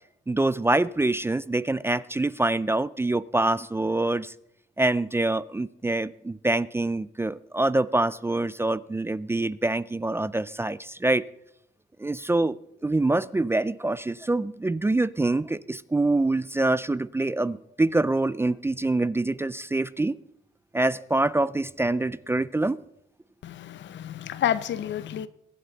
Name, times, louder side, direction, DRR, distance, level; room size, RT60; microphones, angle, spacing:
voice 1, 0.3-4.3 4.8-11.2 12.0-12.6 12.8-20.2 20.7-22.8, right 2 dB, 10° right, 0.4 m, -25 dB
voice 2, 23.4-25.3, left 10 dB, 65° left, 0.8 m, -29 dB
22.0 x 8.9 x 4.0 m
cardioid pair, 90°, 20 cm